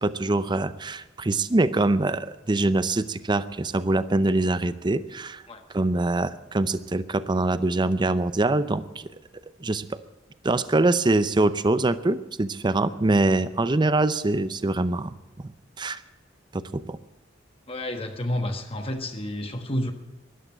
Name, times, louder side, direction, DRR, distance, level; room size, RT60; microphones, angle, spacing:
voice 1, 0.0-5.4 5.7-9.1 9.6-10.0 10.4-15.1 15.8-16.0 16.5-17.0, right 2 dB, 25° right, 14 dB, 0.6 m, -24 dB
voice 2, 17.7-19.9, left 1 dB, 30° left, 5 dB, 1.3 m, -30 dB
13.0 x 11.5 x 8.8 m, 1.1 s
head